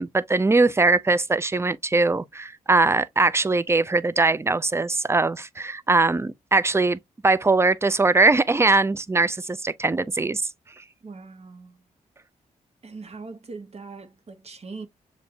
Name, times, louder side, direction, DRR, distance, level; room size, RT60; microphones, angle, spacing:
voice 1, 0.0-10.4, right 3 dB, 15° right, 0.4 m, -21 dB
voice 2, 11.0-11.8 12.8-14.9, right 4 dB, 40° right, 1.1 m, -41 dB
6.9 x 2.6 x 2.2 m
supercardioid pair, 45°, 16 cm